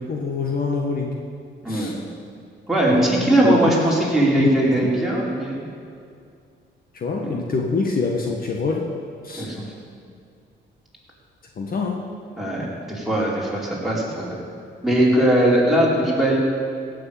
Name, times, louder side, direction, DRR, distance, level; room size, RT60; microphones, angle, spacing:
voice 1, 0.1-1.1 1.7-2.0 2.9-3.8 4.4-4.9 6.9-8.9 9.2-9.5 11.6-12.0, left 4 dB, 45° left, 1 dB, 1.5 m, -25 dB
voice 2, 1.6-1.9 2.7-5.7 7.2-7.3 9.4-9.6 12.4-14.3 14.8-16.4, right 1 dB, ahead, -5 dB, 4.4 m, -20 dB
15.5 x 6.7 x 8.8 m, 2.3 s
cardioid pair, 90°, 20 cm